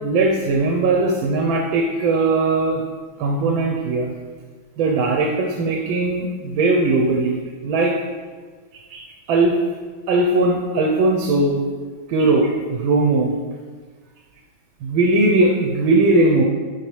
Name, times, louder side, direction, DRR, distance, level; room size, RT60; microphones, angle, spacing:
voice 1, 0.0-2.8 3.2-4.1 4.8-7.9 8.9-9.0 9.3-9.5 10.1-11.6 12.1-13.3 14.8-16.4, right 2 dB, 85° right, 0 dB, 1.5 m, -19 dB
10.0 x 4.5 x 3.2 m, 1.5 s
omnidirectional pair, 2.1 m